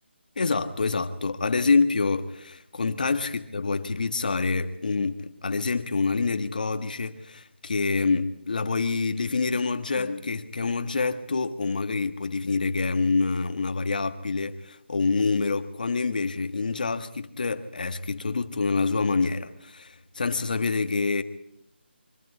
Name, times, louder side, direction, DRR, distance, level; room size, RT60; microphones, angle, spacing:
voice 1, 0.4-21.2, left 4 dB, 45° left, 1.8 m, -26 dB
24.5 x 14.0 x 9.6 m
figure-of-eight pair, 175°, 6 cm